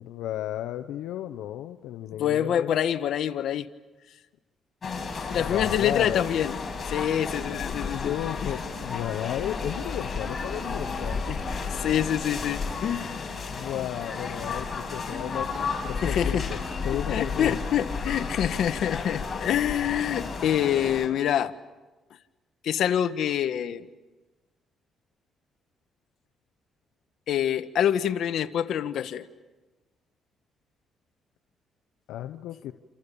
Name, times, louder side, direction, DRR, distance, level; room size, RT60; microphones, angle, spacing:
voice 1, 0.0-2.8 5.4-6.2 7.9-11.2 13.5-16.6 16.8-17.6 32.1-32.7, left 12 dB, 90° left, 8 dB, 1.0 m, -34 dB
voice 2, 2.2-3.7 5.3-6.6 6.9-8.1 8.4-8.5 11.3-11.4 11.7-13.2 16.0-16.5 17.1-21.5 22.6-23.9 27.3-29.3, left 10 dB, 75° left, 9 dB, 1.3 m, -26 dB
sound 1, 4.8-21.1, left 4 dB, 35° left, 6.6 m, -33 dB
28.0 x 28.0 x 7.0 m, 1.2 s
cardioid pair, 90°, 0 cm